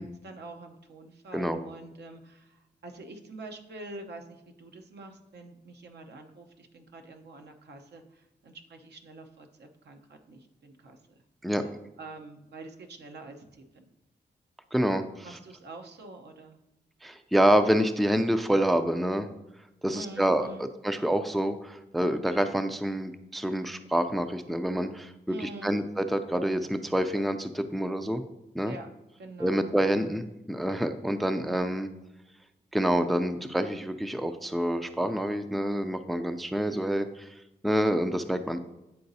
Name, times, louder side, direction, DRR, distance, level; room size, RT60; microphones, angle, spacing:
voice 1, 0.0-11.0 12.0-13.8 15.2-16.6 19.9-20.7 25.3-25.8 28.7-28.9 29.2-29.7, right 2 dB, 75° right, 5 dB, 0.8 m, -46 dB
voice 2, 14.7-15.4 17.0-19.3 19.8-28.2 28.5-28.7 29.4-31.9 32.7-37.3 37.6-38.6, right 1 dB, ahead, 9 dB, 0.4 m, -27 dB
9.5 x 3.9 x 2.7 m, 0.94 s
cardioid pair, 65°, 18 cm